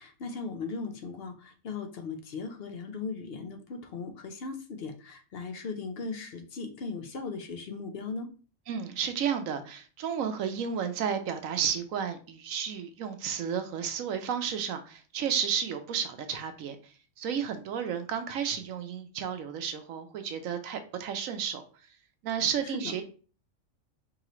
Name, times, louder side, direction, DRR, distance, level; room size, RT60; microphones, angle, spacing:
voice 1, 0.0-8.3, left 4 dB, 55° left, 6 dB, 0.8 m, -38 dB
voice 2, 8.7-21.6 22.2-23.0, right 7 dB, 80° right, 8 dB, 1.1 m, -32 dB
4.9 x 3.1 x 3.0 m, 0.37 s
omnidirectional pair, 1.4 m